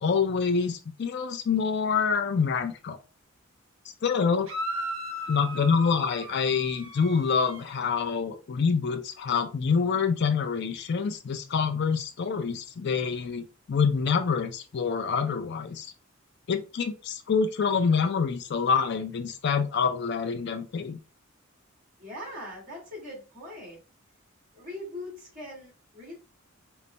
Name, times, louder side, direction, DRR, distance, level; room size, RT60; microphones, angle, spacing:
voice 1, 0.0-3.0 4.0-4.5 5.3-15.9 16.5-21.0, left 5 dB, 55° left, 8 dB, 0.4 m, -26 dB
sound 1, 4.5-7.7, equal, 80° right, 0.9 m, -36 dB
voice 2, 22.0-23.8 24.5-26.1, left 1 dB, 40° right, -2 dB, 1.9 m, -41 dB
3.9 x 2.1 x 3.2 m, 0.33 s
head